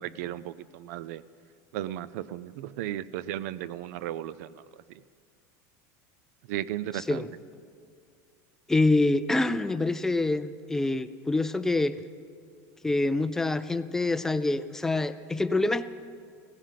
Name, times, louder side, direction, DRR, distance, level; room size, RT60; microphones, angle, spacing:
voice 1, 0.0-1.2 1.7-4.5 6.5-7.2, right 12 dB, 75° right, 18 dB, 0.5 m, -35 dB
voice 2, 6.9-7.3 8.7-12.0 12.8-15.8, left 2 dB, 5° left, 13 dB, 0.3 m, -26 dB
16.0 x 15.5 x 5.8 m, 2.2 s
cardioid pair, 170°, 9 cm